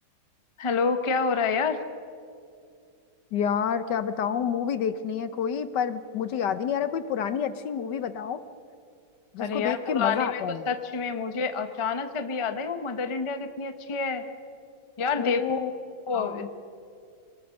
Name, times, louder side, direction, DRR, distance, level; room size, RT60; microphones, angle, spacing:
voice 1, 0.6-1.8 9.4-14.2 15.0-15.6 16.1-16.5, left 5 dB, 25° left, 8 dB, 0.6 m, -28 dB
voice 2, 3.3-8.4 9.3-10.7 15.2-15.7 16.1-16.5, left 8 dB, 65° left, 12 dB, 1.3 m, -29 dB
25.5 x 20.0 x 6.5 m, 2.4 s
omnidirectional pair, 2.2 m